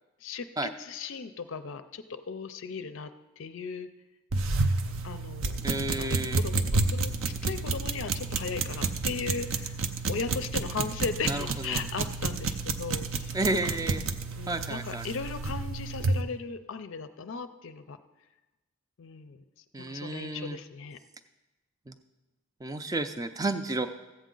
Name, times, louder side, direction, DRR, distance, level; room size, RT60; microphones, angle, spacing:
voice 1, 0.2-3.1 3.4-3.9 5.0-5.6 6.0-7.1 7.4-9.8 10.1-13.4 13.6-14.0 14.4-18.0 19.0-19.4 19.9-21.0, left 5 dB, 60° left, 10 dB, 0.4 m, -37 dB
sound 1, 4.3-16.2, right 3 dB, 60° right, 0.6 m, -30 dB
voice 2, 5.6-6.4 11.3-11.8 13.3-14.0 14.5-15.0 19.7-20.6 21.9-22.0 22.6-23.9, right 2 dB, 15° right, 9 dB, 0.4 m, -31 dB
14.5 x 8.2 x 3.8 m, 1.1 s
head